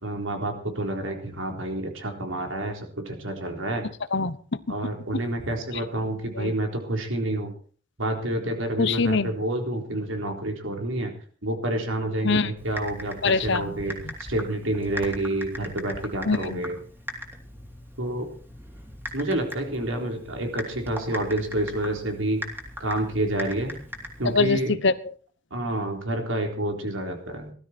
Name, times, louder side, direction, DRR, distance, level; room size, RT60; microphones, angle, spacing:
voice 1, 0.0-3.9 4.7-7.5 8.0-11.1 11.4-14.0 14.3-16.8 18.0-18.3 19.1-22.4 22.8-23.8 24.2-24.7 25.5-27.5, right 1 dB, 90° right, 3 dB, 3.8 m, -28 dB
voice 2, 4.1-4.7 5.1-5.2 6.3-6.5 8.8-9.3 12.2-12.5 13.2-13.8 14.0-14.1 16.2-16.6 24.2-25.1, left 3 dB, 65° left, 15 dB, 1.1 m, -24 dB
Typing, 12.6-24.5, equal, 10° right, 3.6 m, -39 dB
19.0 x 13.0 x 4.4 m, 0.43 s
head